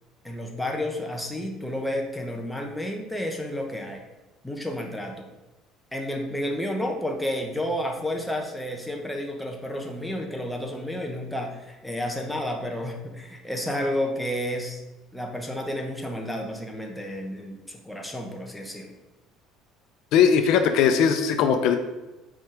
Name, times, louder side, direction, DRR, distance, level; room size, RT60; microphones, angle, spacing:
voice 1, 0.2-4.0 4.4-5.3 5.9-14.8 15.1-18.9, left 1 dB, 5° left, 1 dB, 1.0 m, -31 dB
voice 2, 20.1-21.8, left 7 dB, 65° left, 7 dB, 0.6 m, -19 dB
6.2 x 4.6 x 5.0 m, 1.1 s
cardioid pair, 135°, 0 cm